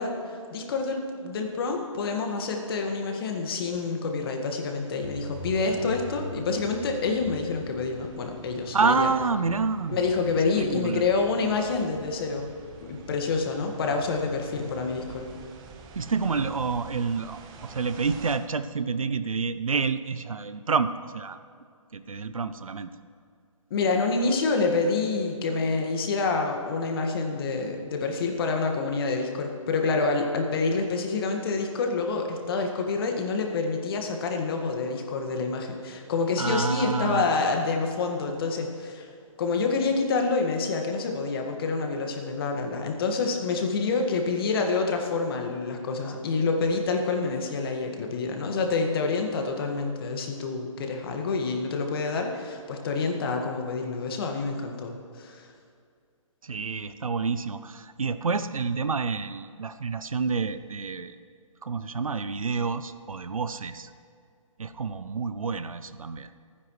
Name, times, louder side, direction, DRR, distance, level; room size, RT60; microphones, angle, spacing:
voice 1, 0.0-9.1 9.9-12.5 12.9-15.3 23.7-39.1 39.4-55.5, left 4 dB, 45° left, 3 dB, 1.8 m, -27 dB
sound 1, 5.0-18.4, right 3 dB, 20° right, 1.2 m, -45 dB
voice 2, 8.7-10.0 10.3-11.1 15.9-21.4 21.9-22.9 36.4-37.3 56.4-61.1 61.6-63.9 64.6-66.3, right 5 dB, 85° right, 12 dB, 0.7 m, -28 dB
25.5 x 9.8 x 3.2 m, 2.3 s
hypercardioid pair, 145°, 17 cm